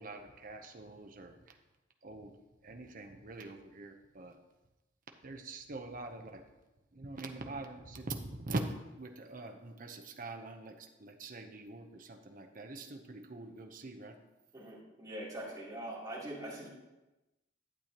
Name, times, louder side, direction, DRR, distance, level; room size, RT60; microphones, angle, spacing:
voice 1, 0.0-1.6 2.0-2.3 2.6-4.4 5.2-6.4 6.9-8.6 9.0-14.2, right 2 dB, 45° right, 4 dB, 0.8 m, -44 dB
voice 2, 14.5-16.7, right 1 dB, 20° right, -8 dB, 3.3 m, -43 dB
11.5 x 8.2 x 3.0 m, 1.0 s
head